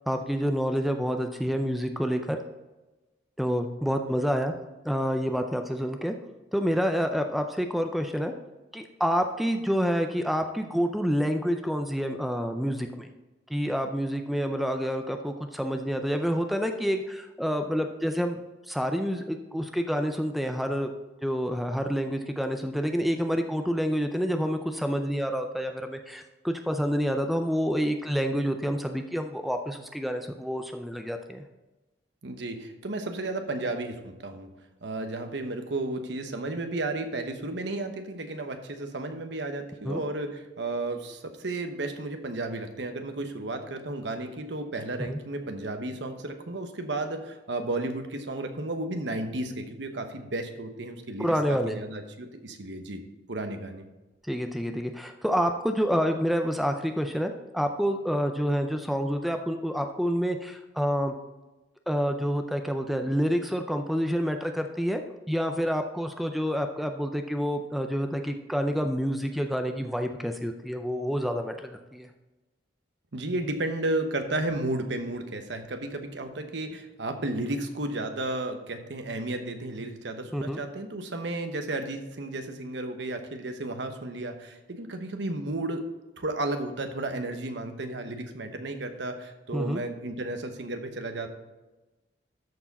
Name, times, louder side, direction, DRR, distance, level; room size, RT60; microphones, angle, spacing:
voice 1, 0.1-2.4 3.4-4.5 4.8-6.1 6.5-8.3 8.7-13.1 13.5-18.4 18.7-20.9 21.2-31.4 39.8-40.0 45.1-45.2 51.2-51.8 54.2-61.1 61.9-65.0 65.3-72.1 80.3-80.6 89.5-89.8, equal, ahead, 5 dB, 0.4 m, -28 dB
voice 2, 32.2-34.5 34.8-53.0 53.3-53.9 73.1-85.8 86.2-91.3, right 2 dB, 70° right, 6 dB, 1.0 m, -33 dB
13.0 x 4.7 x 4.1 m, 1.1 s
head